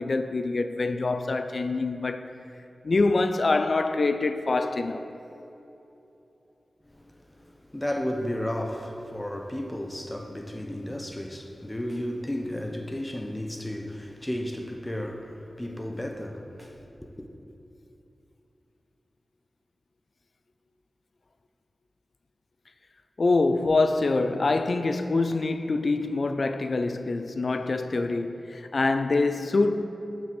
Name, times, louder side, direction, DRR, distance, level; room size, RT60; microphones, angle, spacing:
voice 1, 0.0-2.3 2.8-5.1 23.2-29.9, left 3 dB, 50° left, 0.4 m, -25 dB
voice 2, 6.8-17.3, left 1 dB, 15° left, 0.8 m, -33 dB
7.3 x 5.9 x 7.6 m
wide cardioid pair, 110°, 0 cm